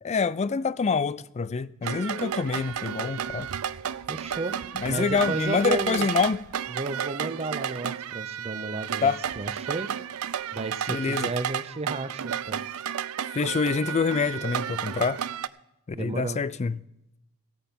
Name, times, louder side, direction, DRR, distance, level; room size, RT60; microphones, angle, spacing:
voice 1, 0.0-3.5 4.7-6.4 9.0-9.2 10.9-11.3 13.3-15.2 16.0-16.8, left 5 dB, 30° left, 0.3 m, -26 dB
sound 1, 1.8-15.5, right 9 dB, 80° right, 0.4 m, -32 dB
voice 2, 4.1-4.6 4.9-6.1 6.7-9.1 9.4-9.9 10.5-12.6 15.9-16.4, right 3 dB, 30° right, 0.6 m, -33 dB
15.0 x 8.7 x 5.3 m
head